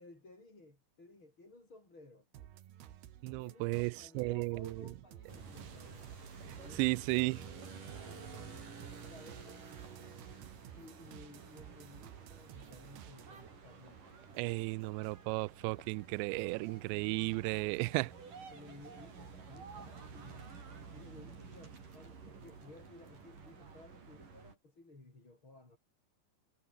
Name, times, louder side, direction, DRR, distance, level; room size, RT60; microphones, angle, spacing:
voice 1, 0.0-2.3 3.4-6.1 6.4-7.1 8.0-9.6 10.7-14.2 18.5-20.5 20.9-25.8, left 2 dB, 25° left, 7.5 m, -57 dB
sound 1, 2.3-13.5 13.9-15.3, right 12 dB, 65° right, 3.4 m, -55 dB
voice 2, 3.2-4.7 6.8-7.4 14.4-18.1, right 25 dB, 85° right, 2.6 m, -34 dB
sound 2, 5.3-24.6, right 5 dB, 45° right, 6.3 m, -51 dB
omnidirectional pair, 5.5 m